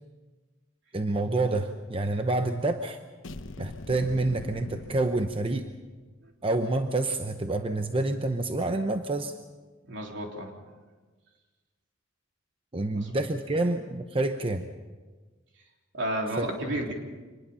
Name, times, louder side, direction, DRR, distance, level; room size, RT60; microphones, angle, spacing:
voice 1, 0.9-3.0 3.6-5.7 6.4-9.4 12.7-14.7, right 2 dB, 30° right, 6 dB, 0.8 m, -28 dB
sound 1, 3.2-6.0, left 2 dB, 85° left, 1.1 m, -42 dB
voice 2, 9.8-10.5 12.9-13.1 15.9-16.9, right 1 dB, 70° right, 1 dB, 3.6 m, -32 dB
25.5 x 20.0 x 5.6 m, 1.3 s
head